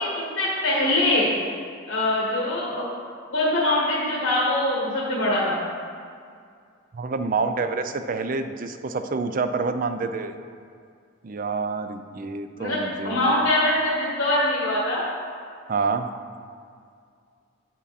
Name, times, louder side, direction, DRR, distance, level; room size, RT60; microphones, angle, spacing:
voice 1, 0.0-1.4 1.9-2.8 3.3-5.6 12.6-15.0, left 1 dB, 60° left, -6 dB, 1.5 m, -23 dB
voice 2, 6.9-10.3 11.2-13.5 15.7-16.1, right 4 dB, 40° right, 8 dB, 0.4 m, -27 dB
8.5 x 5.8 x 4.1 m, 2.2 s
head